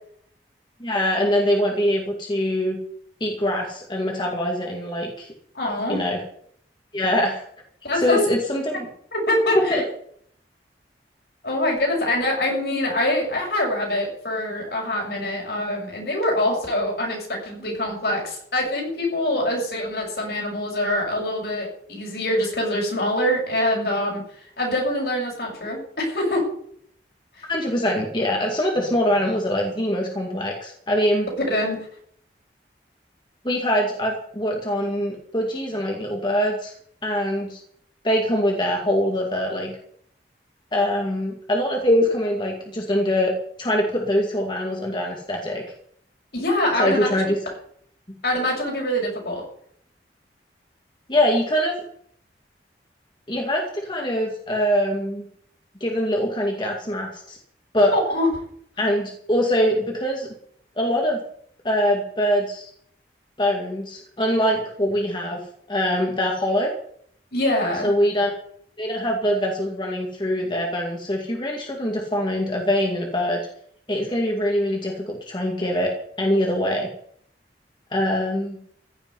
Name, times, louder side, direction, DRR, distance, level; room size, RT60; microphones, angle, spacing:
voice 1, 0.8-2.8 3.2-5.3 5.9-6.2 6.9-7.4 7.9-8.9 9.7-9.8 27.5-31.3 33.4-36.7 37.0-37.6 38.0-39.7 40.7-43.3 43.6-45.6 46.8-47.5 51.1-51.8 53.3-55.3 55.8-57.4 57.7-57.9 58.8-60.3 60.8-61.2 61.6-62.7 63.4-65.4 65.7-66.7 67.8-68.3 68.8-73.4 73.9-75.9 76.2-76.9 77.9-78.6, equal, 25° left, 0 dB, 2.3 m, -23 dB
voice 2, 5.5-6.0 7.8-8.2 9.1-9.8 11.4-24.2 24.6-26.4 31.5-31.8 46.3-47.1 48.2-49.4 57.9-58.3 67.3-67.9, left 1 dB, 65° left, -1 dB, 7.0 m, -24 dB
15.5 x 7.0 x 10.0 m, 0.65 s
head